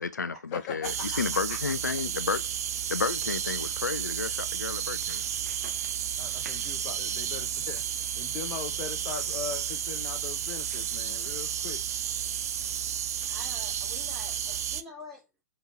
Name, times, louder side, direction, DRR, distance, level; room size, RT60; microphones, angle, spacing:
voice 1, 0.0-2.4 2.9-5.2, left 5 dB, 85° left, 0.4 m, -32 dB
voice 2, 0.5-1.6 6.2-7.8 8.2-11.8 12.2-12.5, left 7 dB, 35° left, 0.7 m, -40 dB
sound 1, 0.8-14.8, right 9 dB, 60° right, 0.4 m, -32 dB
voice 3, 13.3-15.3, left 1 dB, 5° right, 2.4 m, -46 dB
4.9 x 2.9 x 2.8 m
figure-of-eight pair, 110°, 9 cm